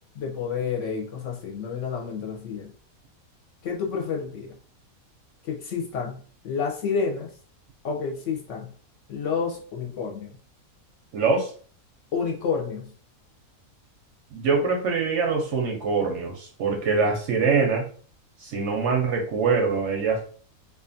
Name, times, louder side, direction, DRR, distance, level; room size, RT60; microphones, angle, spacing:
voice 1, 0.2-2.7 3.6-4.5 5.4-6.2 6.4-7.3 7.8-8.7 9.1-10.3 12.1-12.9, left 6 dB, 65° left, 0 dB, 0.8 m, -29 dB
voice 2, 11.1-11.5 14.3-17.8 18.4-20.3, right 4 dB, 65° right, 1 dB, 0.7 m, -24 dB
2.5 x 2.4 x 2.5 m, 0.44 s
omnidirectional pair, 1.5 m